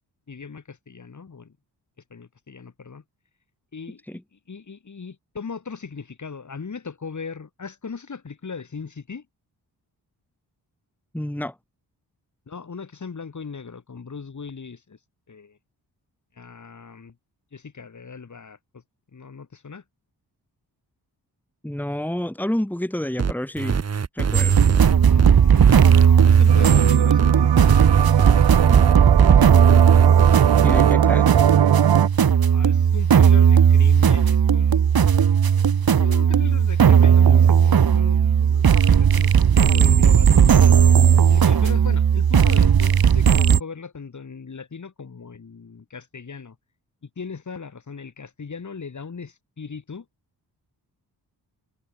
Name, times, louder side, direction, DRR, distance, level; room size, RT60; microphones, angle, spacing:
voice 1, 0.3-1.6 2.1-3.0 3.7-9.3 12.5-15.0 15.3-15.6 16.3-17.2 17.5-18.8 19.1-19.8 25.1-27.8 32.5-35.1 35.7-40.7 41.3-46.6 47.0-50.1, left 5 dB, 45° left, 7.7 m, -38 dB
voice 2, 11.1-11.6 21.6-23.8 24.1-24.6 30.6-31.5, left 1 dB, 5° left, 3.6 m, -29 dB
sound 1, 23.2-30.9, right 6 dB, 40° right, 1.3 m, -25 dB
sound 2, 24.3-43.6, right 7 dB, 60° right, 2.2 m, -16 dB
sound 3, 26.5-32.1, right 10 dB, 90° right, 1.2 m, -21 dB
wide cardioid pair, 140°, 41 cm